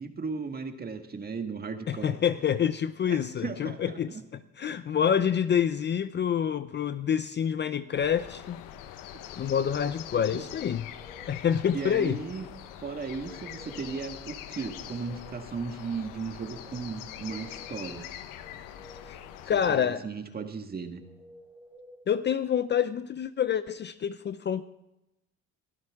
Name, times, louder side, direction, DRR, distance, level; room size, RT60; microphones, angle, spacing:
voice 1, 0.0-2.2 3.1-4.2 9.1-9.2 10.3-10.4 11.7-12.5 12.8-18.1 19.4-21.0, right 5 dB, 30° right, 6 dB, 1.7 m, -36 dB
voice 2, 1.9-4.2 4.6-8.6 9.4-10.9 11.3-12.2 19.1-19.2 19.5-20.0 22.1-24.6, left 8 dB, 35° left, 13 dB, 0.5 m, -27 dB
sound 1, 7.9-19.7, left 11 dB, 85° left, 1.1 m, -44 dB
sound 2, 10.6-11.4 13.0-14.0 14.4-15.5 16.9-17.9 18.4-19.4 21.0-22.0, equal, ahead, 3.5 m, -54 dB
22.5 x 12.5 x 3.6 m, 0.91 s
cardioid pair, 100°, 32 cm